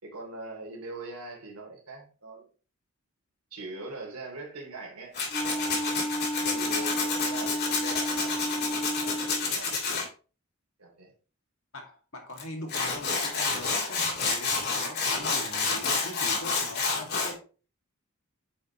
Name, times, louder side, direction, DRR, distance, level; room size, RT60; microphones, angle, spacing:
voice 1, 0.0-2.5 3.5-6.0 6.4-9.8 10.8-11.1 12.6-12.8, right 2 dB, 85° right, 2.9 m, -42 dB
Tools, 5.1-10.0 12.4-12.5 12.7-17.3, left 4 dB, 50° left, 2.0 m, -29 dB
Wind instrument woodwind instrument, 5.3-9.5, equal, 15° left, 2.1 m, -32 dB
voice 2, 11.7-17.5, left 1 dB, 65° left, 2.0 m, -42 dB
8.5 x 5.1 x 3.0 m
head